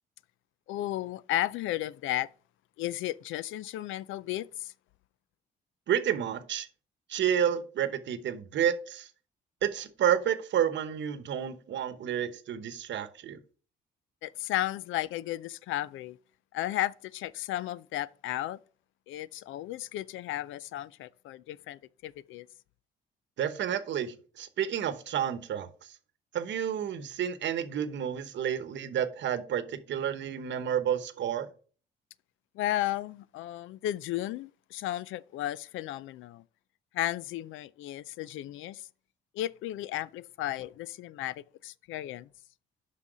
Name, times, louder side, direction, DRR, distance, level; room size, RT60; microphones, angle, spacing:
voice 1, 0.7-2.3 2.8-4.7 14.2-16.2 16.5-18.6 19.1-22.5 32.6-36.4 36.9-38.9 39.3-42.3, left 14 dB, 85° left, 0.4 m, -34 dB
voice 2, 5.9-6.7 7.1-9.1 9.6-13.4 23.4-25.7 26.3-31.5, right 9 dB, 65° right, 1.0 m, -30 dB
6.0 x 5.7 x 5.0 m
cardioid pair, 90°, 20 cm